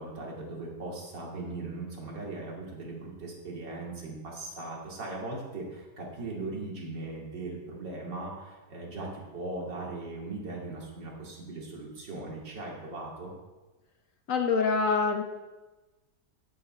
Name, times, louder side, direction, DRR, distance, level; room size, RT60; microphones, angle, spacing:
voice 1, 0.0-13.3, right 2 dB, 85° right, -2 dB, 3.0 m, -39 dB
voice 2, 14.3-15.2, left 4 dB, 55° left, 5 dB, 1.1 m, -25 dB
11.5 x 8.5 x 4.4 m, 1.2 s
omnidirectional pair, 1.8 m